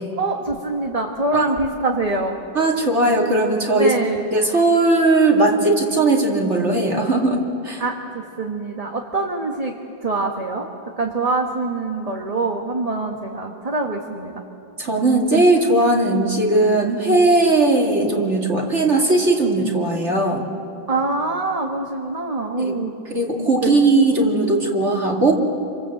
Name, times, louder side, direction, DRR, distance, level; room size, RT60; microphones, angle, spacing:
voice 1, 0.2-2.4 3.7-4.3 7.8-9.8 10.0-10.7 11.0-14.4 20.9-22.9 23.6-23.7, right 3 dB, 20° right, 1 dB, 1.4 m, -24 dB
voice 2, 2.5-3.9 4.3-7.8 14.8-20.4 22.6-22.8 23.1-25.3, right 2 dB, 35° right, 0 dB, 2.6 m, -18 dB
27.5 x 26.5 x 7.9 m, 2.7 s
omnidirectional pair, 2.1 m